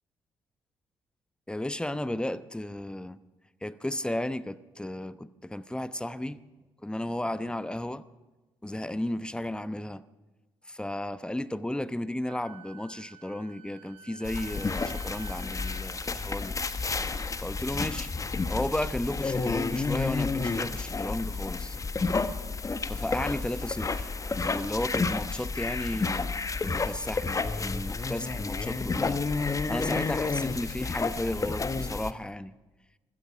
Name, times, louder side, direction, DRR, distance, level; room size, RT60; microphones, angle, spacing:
voice 1, 1.5-3.2 3.6-6.4 6.8-8.0 8.6-10.0 10.7-16.5 17.4-18.1 18.5-21.8 22.9-24.1 24.4-26.3 26.6-29.2 29.7-32.5, left 1 dB, 10° left, 0.9 m, -34 dB
Wind instrument woodwind instrument, 12.2-17.4, right 9 dB, 55° right, 2.4 m, -51 dB
sound 1, 14.2-32.1, left 4 dB, 30° left, 1.2 m, -31 dB
25.5 x 16.5 x 6.2 m
figure-of-eight pair, 40°, 12 cm